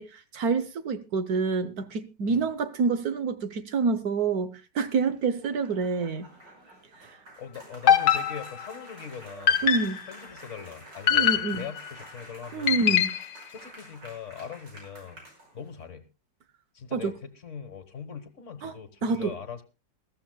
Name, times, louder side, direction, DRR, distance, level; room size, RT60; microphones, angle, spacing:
voice 1, 0.0-6.3 7.0-7.2 9.6-10.0 11.1-11.6 12.5-13.2 16.9-17.1 18.6-18.7 19.0-19.4, right 4 dB, 65° right, 1.3 m, -27 dB
sound 1, 4.8-15.8, right 1 dB, 80° right, 6.3 m, -49 dB
voice 2, 7.4-12.9 13.5-15.2 15.5-16.0 16.7-19.6, left 7 dB, 45° left, 1.6 m, -41 dB
sound 2, 7.9-8.8 9.5-10.1 11.1-11.9 12.7-13.3, left 9 dB, 70° left, 1.4 m, -23 dB
21.5 x 14.0 x 2.2 m
omnidirectional pair, 1.8 m